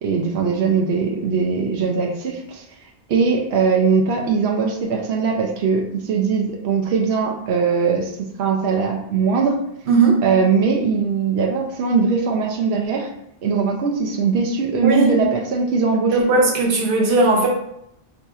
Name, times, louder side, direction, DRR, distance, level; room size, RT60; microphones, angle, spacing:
voice 1, 0.0-2.6 3.1-9.6 10.2-13.1 13.4-16.3, right 5 dB, 90° right, 0 dB, 0.8 m, -20 dB
voice 2, 9.9-10.2 14.8-15.1 16.1-17.5, right 3 dB, 60° right, 0 dB, 0.8 m, -17 dB
4.0 x 2.7 x 2.3 m, 0.77 s
omnidirectional pair, 1.0 m